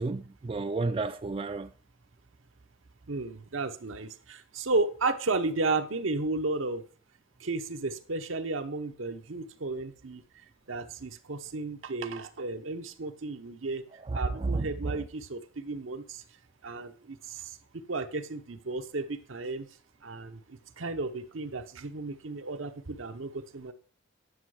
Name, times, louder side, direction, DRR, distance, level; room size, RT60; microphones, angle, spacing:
voice 1, 0.0-1.7 14.0-15.0, right 3 dB, 30° right, 0.3 m, -32 dB
voice 2, 3.1-6.8 7.4-10.2 10.7-13.8 14.1-16.2 16.6-17.6 17.9-19.7 20.0-23.7, right 3 dB, 80° right, 0.9 m, -33 dB
10.0 x 6.3 x 4.8 m
head